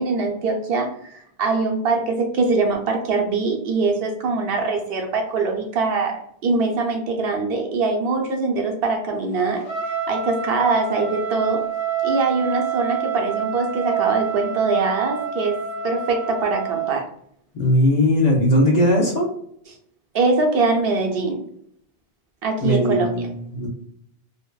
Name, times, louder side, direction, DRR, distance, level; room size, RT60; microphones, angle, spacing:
voice 1, 0.0-9.6 10.1-11.6 12.0-17.0 20.1-21.3 22.4-23.1, right 3 dB, 70° right, 2 dB, 0.7 m, -22 dB
Trumpet, 9.6-16.9, right 7 dB, 85° left, 0.9 m, -27 dB
voice 2, 17.5-19.3 22.6-23.7, left 1 dB, 50° left, -2 dB, 0.6 m, -19 dB
2.7 x 2.1 x 2.2 m, 0.66 s
omnidirectional pair, 1.1 m